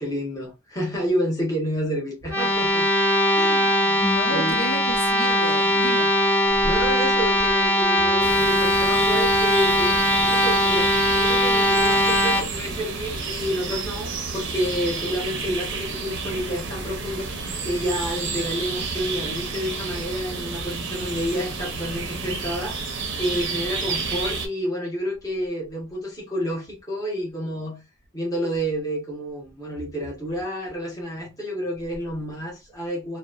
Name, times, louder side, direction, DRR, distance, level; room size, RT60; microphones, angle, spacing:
voice 1, 0.0-2.9 3.3-4.0 4.3-4.6 6.6-17.3 17.6-22.8 23.2-27.8 28.1-33.2, equal, 15° left, 0.8 m, -29 dB
sound 1, 2.2-12.4, left 1 dB, 10° right, 0.9 m, -20 dB
voice 2, 4.0-6.1, left 1 dB, 90° left, 0.8 m, -30 dB
sound 2, 8.2-24.5, right 4 dB, 55° right, 0.5 m, -30 dB
2.8 x 2.0 x 2.3 m
head